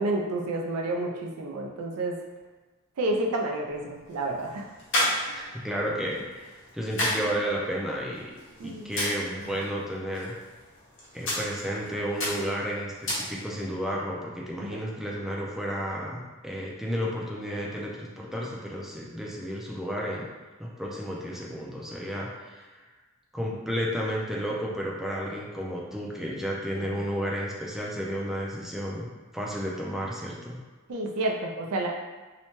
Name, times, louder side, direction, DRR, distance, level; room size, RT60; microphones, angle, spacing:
voice 1, 0.0-2.2 3.0-4.7 7.1-7.3 8.6-8.9 14.6-14.8 26.9-27.0 30.9-31.9, right 2 dB, 90° right, 0 dB, 0.5 m, -30 dB
sound 1, 3.7-13.7, left 1 dB, 60° left, 0.9 m, -34 dB
voice 2, 5.3-8.3 8.6-10.3 11.1-20.3 20.6-22.8 23.3-29.1 29.3-30.6, equal, ahead, -4 dB, 0.3 m, -32 dB
2.8 x 2.1 x 2.9 m, 1.2 s
head